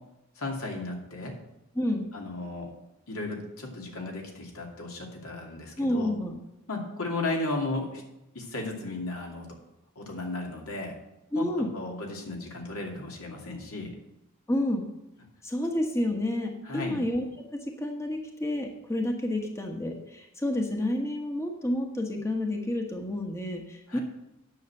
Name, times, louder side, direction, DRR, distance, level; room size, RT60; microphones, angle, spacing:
voice 1, 0.4-1.3 2.1-2.7 3.1-6.1 6.7-8.0 8.3-9.5 10.0-11.0 11.3-11.4 11.7-13.9 16.7-17.0 23.9-24.0, left 2 dB, 75° left, 0 dB, 2.6 m, -35 dB
voice 2, 1.7-2.1 5.8-6.4 11.3-11.7 14.5-14.9 15.4-17.2 17.5-24.0, left 1 dB, 15° left, 2 dB, 1.2 m, -29 dB
9.4 x 6.6 x 7.7 m, 0.88 s
head